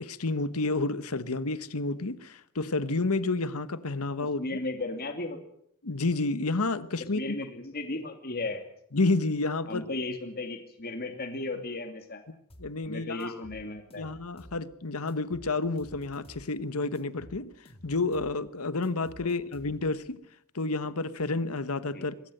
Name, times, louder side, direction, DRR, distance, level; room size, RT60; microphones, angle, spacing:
voice 1, 0.0-4.4 5.8-7.3 8.9-9.9 12.6-13.3 14.0-17.5 17.8-20.2 20.5-22.3, left 3 dB, 75° left, 1.2 m, -30 dB
voice 2, 4.4-5.4 7.0-8.6 9.7-12.2 12.8-14.1 19.2-19.3 21.9-22.1, left 2 dB, 45° left, 2.7 m, -35 dB
sound 1, 12.5-12.7 13.2-14.6 15.1-16.5 16.9-18.4 18.8-20.0, equal, 25° left, 2.4 m, -51 dB
23.0 x 17.5 x 7.9 m
head